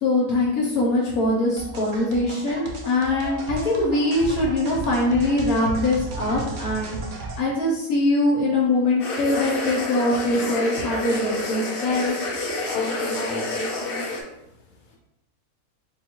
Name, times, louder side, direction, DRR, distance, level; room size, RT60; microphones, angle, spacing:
voice 1, 0.0-12.2, left 2 dB, 70° left, -4 dB, 1.3 m, -22 dB
sound 1, 1.6-7.4, right 2 dB, 90° right, 0.4 m, -34 dB
sound 2, 9.0-14.2, left 2 dB, 50° left, 0.7 m, -29 dB
voice 2, 12.5-14.1 14.9-15.0, left 4 dB, 90° left, 0 dB, 1.3 m, -33 dB
4.0 x 2.3 x 4.4 m, 0.88 s
omnidirectional pair, 1.6 m